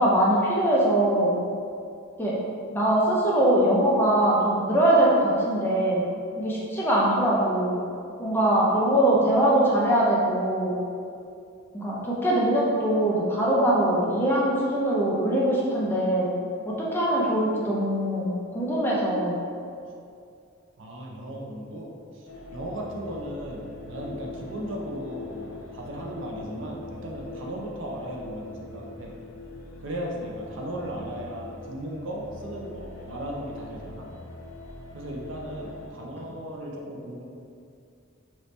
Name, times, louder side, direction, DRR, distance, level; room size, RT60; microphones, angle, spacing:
voice 1, 0.0-1.3 2.2-2.4 2.7-6.0 6.4-7.8 8.2-10.7 11.7-16.3 16.7-19.4, right 1 dB, 10° left, -6 dB, 0.5 m, -22 dB
voice 2, 20.8-29.2 29.8-34.1 34.9-37.2, right 1 dB, 60° right, -2 dB, 0.5 m, -36 dB
sound 1, 22.2-35.9, left 2 dB, 80° left, 0.5 m, -42 dB
3.0 x 2.7 x 3.2 m, 2.4 s
head